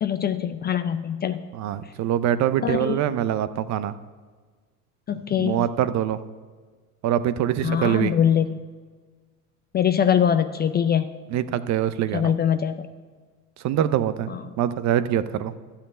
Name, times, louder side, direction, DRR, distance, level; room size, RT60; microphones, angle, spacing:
voice 1, 0.0-1.5 2.6-3.0 5.1-5.7 7.6-8.6 9.7-11.1 12.1-12.9 14.3-14.4, left 8 dB, 25° left, 10 dB, 0.4 m, -23 dB
voice 2, 1.5-3.9 5.4-6.2 7.0-8.1 11.3-12.3 13.6-15.5, right 11 dB, 40° right, 14 dB, 0.6 m, -24 dB
12.0 x 5.7 x 8.6 m, 1.5 s
hypercardioid pair, 85°, 45 cm